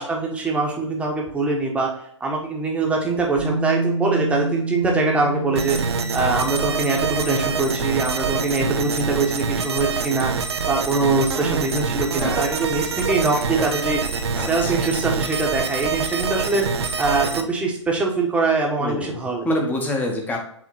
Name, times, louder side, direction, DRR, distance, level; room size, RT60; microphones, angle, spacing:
voice 1, 0.0-1.9 2.2-10.3 10.7-14.0 14.4-19.5, right 3 dB, 10° right, -1 dB, 1.3 m, -23 dB
Bass guitar, 3.4-9.6, right 2 dB, 35° right, 1.2 m, -29 dB
sound 1, 5.6-17.4, right 5 dB, 60° right, 0.8 m, -26 dB
voice 2, 12.2-12.5 14.4-14.7 18.8-19.2 19.4-20.4, left 1 dB, 10° left, 1 dB, 1.2 m, -26 dB
7.6 x 3.5 x 4.2 m, 0.66 s
figure-of-eight pair, 115°, 15 cm